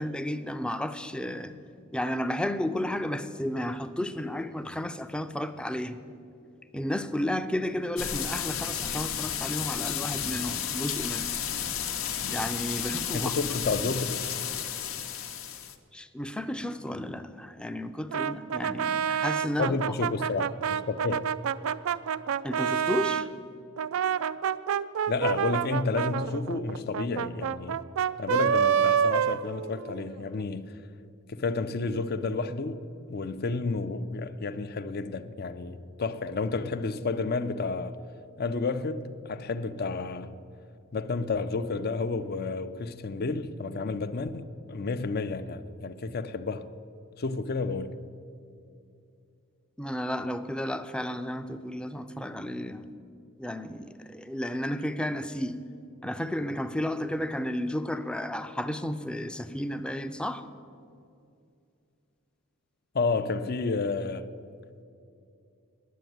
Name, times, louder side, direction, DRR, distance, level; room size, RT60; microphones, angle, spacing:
voice 1, 0.0-1.5 1.9-6.0 6.7-11.3 12.3-13.4 15.9-19.8 20.2-20.3 22.4-23.3 49.8-52.8 53.4-55.6 56.0-60.5, left 1 dB, 5° left, 0.4 m, -32 dB
sound 1, 8.0-15.8, left 8 dB, 85° left, 0.8 m, -32 dB
voice 2, 13.1-14.2 19.6-21.2 25.1-27.8 28.2-30.8 31.3-38.0 38.4-40.4 40.9-46.7 47.2-48.0 62.9-64.3, left 3 dB, 50° left, 0.5 m, -31 dB
Brass instrument, 18.1-23.3 23.8-30.1, right 8 dB, 90° right, 0.4 m, -28 dB
10.5 x 7.9 x 9.2 m
head